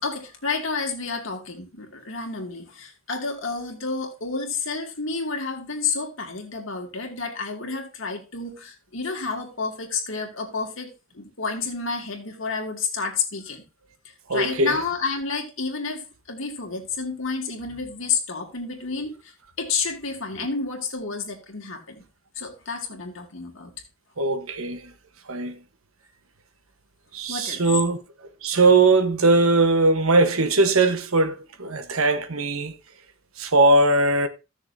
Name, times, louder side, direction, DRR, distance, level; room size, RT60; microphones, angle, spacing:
voice 1, 0.0-13.6 14.0-22.1 22.4-23.7 27.3-27.6, left 4 dB, 70° left, 2.4 m, -30 dB
voice 2, 14.3-14.8 24.2-24.9 25.3-25.6 27.1-28.0 28.4-32.7 33.4-34.3, right 2 dB, 85° right, 1.2 m, -20 dB
15.5 x 6.6 x 2.7 m
head